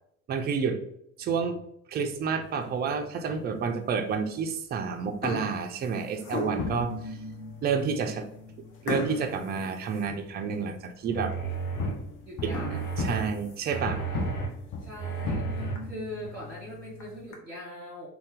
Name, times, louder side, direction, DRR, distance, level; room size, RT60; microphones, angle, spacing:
voice 1, 0.3-0.8 1.2-1.6 1.9-7.2 7.6-8.2 8.8-11.3 12.4-14.0, right 5 dB, 25° right, 5 dB, 0.4 m, -30 dB
sound 1, 2.4-2.9 3.5-3.6 4.5-4.7 5.0-6.9 7.5-7.6 7.9-8.1 8.9-10.6 11.0-11.1 11.6-11.7 12.3-14.0 14.4-14.5 14.9-15.0 15.3-15.4 15.7-15.8 16.8-17.4, left 1 dB, 55° left, 0.9 m, -37 dB
sound 2, 6.6-10.9 11.2-17.3, left 4 dB, 30° left, 0.6 m, -38 dB
sound 3, 11.1-11.9 12.4-13.2 13.7-14.5 15.0-15.7 16.3-16.4, right 5 dB, 75° left, 1.2 m, -33 dB
voice 2, 12.2-13.1 13.7-14.5 14.8-18.1, left 1 dB, 5° right, -7 dB, 1.4 m, -42 dB
2.7 x 2.2 x 3.5 m, 0.73 s
hypercardioid pair, 65°, 40 cm